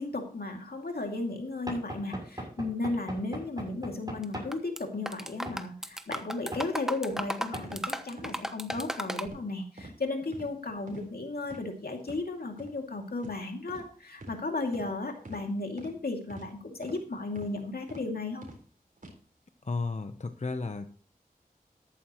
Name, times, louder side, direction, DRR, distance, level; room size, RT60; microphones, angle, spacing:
voice 1, 0.0-18.5, left 2 dB, 80° left, 3 dB, 2.4 m, -35 dB
Knock / Wood, 1.7-4.6 5.5-5.6 6.5-6.7 7.5-7.7, right 1 dB, 25° right, 7.0 m, -39 dB
sound 1, 4.2-4.8 5.1-9.3, equal, 5° right, 1.0 m, -35 dB
sound 2, 7.1-7.2 7.6-7.8 8.2-8.3 8.7-8.9 9.2-9.4 9.8-9.9 10.3-10.5 10.9-11.1 11.4-11.6 12.0-12.2 12.6-12.7 13.2-13.4 13.7-13.9 14.2-14.4 14.7-14.9 15.2-15.4 15.8-15.9 16.3-16.5 16.8-17.0 17.4-17.5 17.9-18.0 18.4-18.6 19.0-19.1, right 1 dB, 60° right, 4.1 m, -45 dB
voice 2, 19.6-20.9, left 3 dB, 50° left, 8 dB, 0.8 m, -33 dB
13.5 x 11.5 x 3.0 m, 0.39 s
wide cardioid pair, 60°, 16 cm